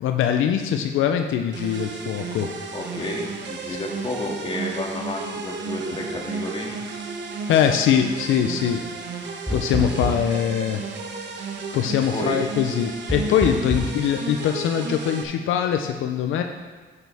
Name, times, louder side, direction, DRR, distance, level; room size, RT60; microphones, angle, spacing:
voice 1, 0.0-2.5 3.7-3.8 7.5-8.8 9.5-10.8 11.3-11.5 11.7-16.4, left 9 dB, 80° left, 5 dB, 0.7 m, -22 dB
sound 1, 1.5-15.2, right 4 dB, 65° right, 1.2 m, -33 dB
voice 2, 2.7-6.8 12.1-12.4, left 1 dB, 30° left, -2 dB, 2.3 m, -30 dB
sound 2, 9.5-10.5 13.1-14.0, equal, ahead, 0.3 m, -28 dB
11.0 x 8.3 x 3.5 m, 1.3 s
cardioid pair, 90°, 20 cm